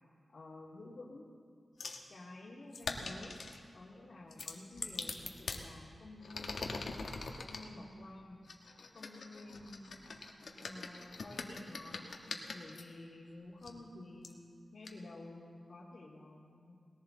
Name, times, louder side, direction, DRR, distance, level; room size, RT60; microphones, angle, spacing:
voice 1, 0.3-1.3 2.1-3.4 3.7-6.8 7.5-8.4 8.9-10.0 10.4-12.1 12.5-14.4 14.7-16.7, left 2 dB, 60° left, -6 dB, 2.2 m, -51 dB
sound 1, 1.8-2.1 2.7-3.6 4.3-5.6 6.2-7.7 8.5-12.8 13.6-13.7 14.2-14.3 14.8-14.9, left 4 dB, 80° left, 1.3 m, -43 dB
19.5 x 18.0 x 3.8 m, 2.3 s
wide cardioid pair, 95°, 0 cm